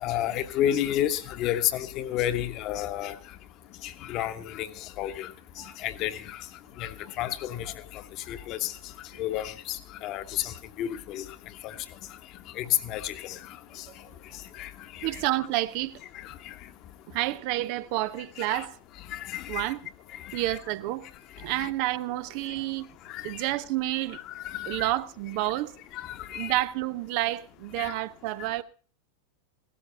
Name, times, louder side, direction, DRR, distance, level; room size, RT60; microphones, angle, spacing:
voice 1, 0.0-3.1 3.8-4.7 5.0-5.3 5.8-6.4 6.8-6.9 7.2-7.7 8.3-8.7 9.2-11.2 11.6-11.7 12.6-13.4 14.6-14.7 15.0-15.2 16.2-16.3 18.5-18.6 19.1-19.7 20.5-20.6 21.6-21.7 23.1-23.3 24.3-24.9 25.9-26.5 27.8-27.9, left 12 dB, 40° left, 1.2 m, -30 dB
voice 2, 15.0-16.0 17.1-18.8 19.5-19.8 20.3-21.1 21.4-22.9 23.2-24.2 24.7-25.8 26.3-28.6, right 16 dB, 45° right, 0.6 m, -29 dB
17.0 x 13.0 x 4.3 m
figure-of-eight pair, 90°, 0 cm